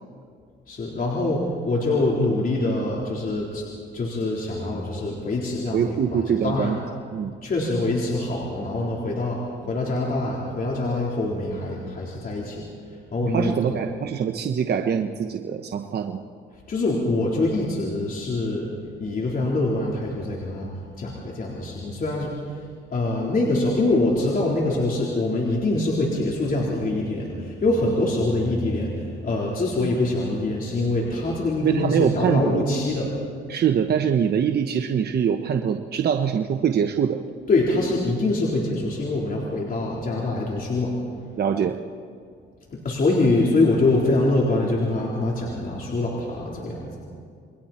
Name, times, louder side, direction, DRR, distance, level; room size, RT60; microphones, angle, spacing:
voice 1, 0.7-3.6 3.9-6.7 7.4-12.6 13.1-13.8 16.7-20.7 21.0-22.6 22.9-33.1 37.5-40.9 42.7-46.9, left 2 dB, 45° left, -4 dB, 4.1 m, -24 dB
voice 2, 5.7-6.8 7.1-7.3 13.2-16.2 31.6-32.6 33.5-37.2 41.4-41.8, right 7 dB, 55° right, 5 dB, 1.1 m, -23 dB
29.5 x 21.5 x 4.4 m, 2.2 s
cardioid pair, 90°, 20 cm